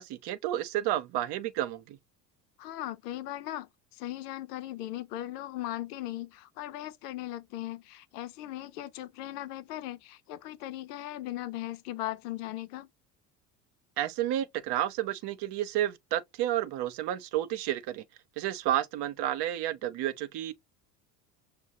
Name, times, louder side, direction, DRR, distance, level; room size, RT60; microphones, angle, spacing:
voice 1, 0.0-2.0 14.0-18.0 18.4-20.5, right 12 dB, 55° right, 0.9 m, -31 dB
voice 2, 2.6-12.9, left 14 dB, 80° left, 0.7 m, -38 dB
6.4 x 2.3 x 2.7 m
hypercardioid pair, 75°, 47 cm